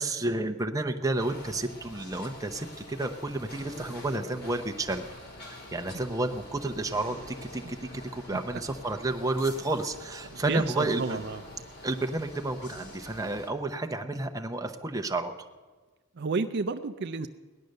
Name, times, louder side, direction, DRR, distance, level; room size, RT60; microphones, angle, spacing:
voice 1, 0.0-5.1 5.4-11.2 11.8-15.3, right 2 dB, 15° right, 6 dB, 0.7 m, -31 dB
sound 1, 1.2-13.5, left 1 dB, 45° left, 2.2 m, -46 dB
voice 2, 10.3-11.4 16.2-17.3, right 4 dB, 50° right, 8 dB, 0.5 m, -31 dB
17.5 x 11.0 x 6.5 m, 1.4 s
head